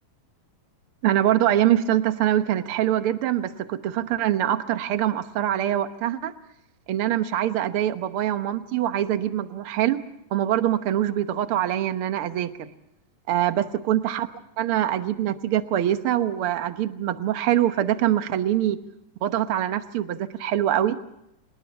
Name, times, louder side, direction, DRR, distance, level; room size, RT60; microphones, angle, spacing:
voice 1, 1.0-6.3 6.9-10.0 10.3-12.7 13.3-14.3 14.6-18.8 19.2-21.0, right 12 dB, 70° right, 10 dB, 1.3 m, -24 dB
26.5 x 20.0 x 7.0 m, 0.81 s
omnidirectional pair, 3.9 m